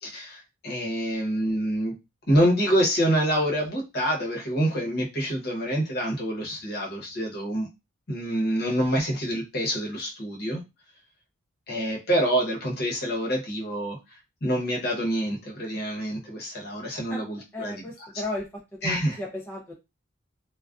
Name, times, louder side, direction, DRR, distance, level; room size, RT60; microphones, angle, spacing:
voice 1, 0.0-1.9 2.3-7.7 8.1-10.6 11.7-18.1 18.8-19.2, equal, 50° left, -2 dB, 0.9 m, -26 dB
voice 2, 17.5-18.5 18.8-19.7, left 2 dB, 10° left, -3 dB, 0.4 m, -34 dB
2.4 x 2.2 x 2.3 m, 0.24 s
head